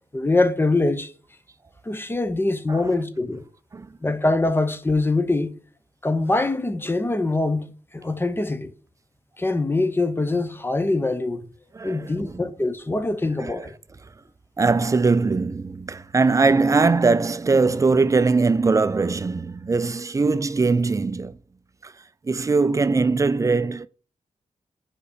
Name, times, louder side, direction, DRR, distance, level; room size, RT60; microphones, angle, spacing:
voice 1, 0.1-1.1 1.8-3.4 4.0-5.5 6.0-8.7 9.4-11.5 11.8-13.7, left 2 dB, 15° left, 0.7 m, -23 dB
voice 2, 11.7-12.5 13.4-13.7 14.6-21.4 21.8-21.9 22.2-23.9, right 4 dB, 25° right, 0.4 m, -21 dB
5.2 x 4.8 x 5.0 m
wide cardioid pair, 90°, 13 cm